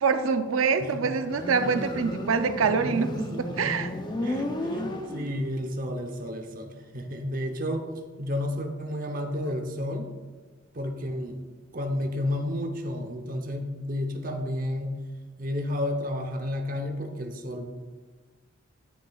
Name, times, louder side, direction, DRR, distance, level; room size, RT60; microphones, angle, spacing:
voice 1, 0.0-3.2 3.6-3.9 4.2-4.4, right 5 dB, 85° right, 9 dB, 0.5 m, -25 dB
voice 2, 0.8-1.1 1.6-1.7 2.6-3.1 3.3-3.9 4.2-7.8 8.2-10.0 10.7-11.4 11.7-15.0 15.4-17.7, left 1 dB, 45° right, 5 dB, 0.8 m, -32 dB
Motorcycle, 1.2-5.6, left 1 dB, 20° left, 0.5 m, -33 dB
10.0 x 6.3 x 2.4 m, 1.4 s
head